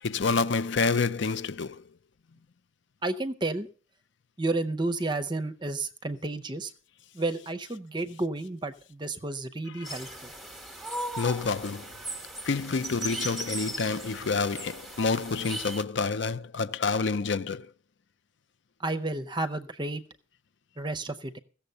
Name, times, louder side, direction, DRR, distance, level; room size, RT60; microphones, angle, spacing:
voice 1, 0.0-1.9 9.7-10.0 11.2-11.9 12.4-17.7, left 4 dB, 60° left, 0.6 m, -28 dB
voice 2, 3.0-3.7 4.4-6.7 7.1-10.3 18.8-20.0 20.8-21.4, right 2 dB, 20° right, 0.6 m, -31 dB
sound 1, 9.8-15.8, right 1 dB, ahead, 1.1 m, -38 dB
15.5 x 7.1 x 6.7 m
head